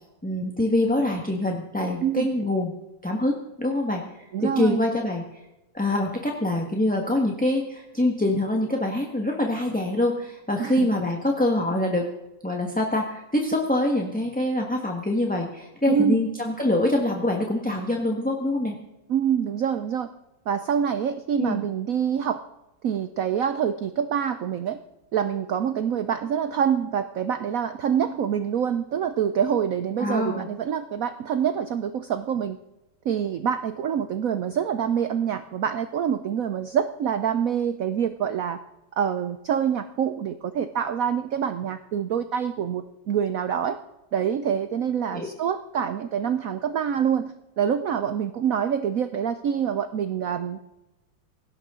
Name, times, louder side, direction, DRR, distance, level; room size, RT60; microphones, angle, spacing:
voice 1, 0.2-2.7 3.0-4.0 4.4-5.4 5.7-12.1 12.4-18.7 21.4-21.6 30.0-30.5 45.1-45.3, left 1 dB, 5° left, 0 dB, 1.2 m, -25 dB
voice 2, 4.3-4.8 10.6-10.9 15.9-16.3 19.1-20.1 20.5-22.4 22.8-24.8 25.1-32.6 33.0-38.6 39.0-43.8 44.1-50.7, right 8 dB, 75° right, 11 dB, 0.7 m, -26 dB
18.0 x 16.5 x 3.8 m, 0.97 s
omnidirectional pair, 2.2 m